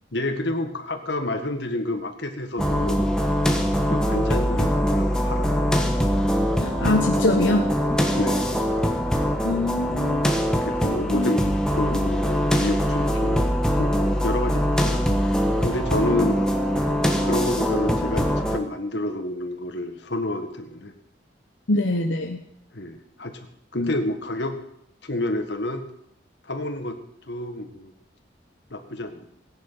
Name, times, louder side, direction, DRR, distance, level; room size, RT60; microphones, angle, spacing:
voice 1, 0.1-3.1 3.9-5.7 8.2-8.5 10.6-15.2 15.6-16.3 17.2-20.9 22.7-24.6 25.0-25.8 26.4-27.0 27.3-27.9 28.7-29.3, left 1 dB, 65° left, 5 dB, 1.8 m, -29 dB
sound 1, 2.6-18.6, equal, 5° left, 1.4 m, -22 dB
voice 2, 6.6-7.7 9.4-10.3 11.1-11.3 16.1-16.3 21.7-22.4 23.8-23.9, left 2 dB, 80° left, 3 dB, 1.2 m, -24 dB
17.0 x 10.5 x 5.7 m, 0.75 s
head